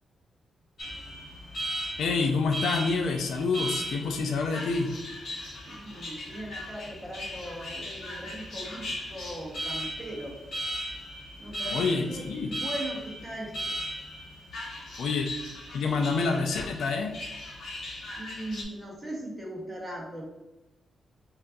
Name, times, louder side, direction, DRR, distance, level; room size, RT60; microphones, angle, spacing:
Alarm, 0.8-18.6, equal, 45° left, 1.0 m, -37 dB
voice 1, 2.0-4.9 11.7-12.5 15.0-15.3 15.7-17.1, left 4 dB, 80° left, 2 dB, 0.4 m, -27 dB
voice 2, 5.7-10.4 11.4-13.7 18.2-20.2, right 1 dB, 5° right, -2 dB, 0.9 m, -39 dB
5.2 x 2.4 x 2.6 m, 1.0 s
wide cardioid pair, 180°, 0 cm